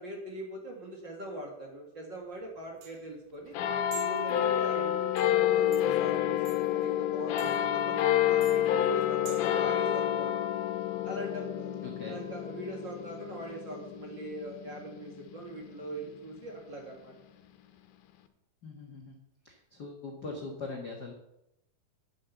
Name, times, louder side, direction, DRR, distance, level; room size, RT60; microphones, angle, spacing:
voice 1, 0.0-3.5 3.9-10.4 11.0-11.7 12.1-17.1, right 1 dB, 40° right, 0 dB, 2.0 m, -41 dB
sound 1, 2.2-9.6, right 9 dB, 60° right, 2.3 m, -51 dB
sound 2, 3.5-16.4 17.1-17.2, left 11 dB, 85° left, 2.8 m, -29 dB
voice 2, 11.8-12.2 18.6-19.1 19.4-21.1, left 3 dB, 55° left, 0 dB, 1.1 m, -41 dB
10.5 x 7.6 x 7.0 m, 0.85 s
omnidirectional pair, 4.3 m